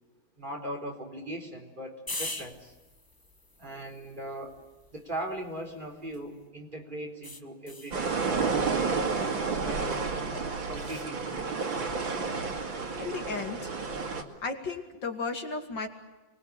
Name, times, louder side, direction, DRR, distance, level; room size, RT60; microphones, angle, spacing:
voice 1, 0.4-2.7 3.6-4.6 4.9-8.8 9.4-10.1 10.7-11.5, right 1 dB, 25° right, 1 dB, 4.3 m, -39 dB
sound 1, 2.1-6.5 7.2-8.0 10.7-11.1, left 2 dB, 15° left, 1.1 m, -43 dB
sound 2, 7.9-14.2, right 4 dB, 80° right, 3.3 m, -30 dB
voice 2, 13.0-13.7 14.4-15.9, left 4 dB, 65° left, 4 dB, 3.1 m, -34 dB
29.5 x 22.0 x 8.5 m, 1.1 s
omnidirectional pair, 2.1 m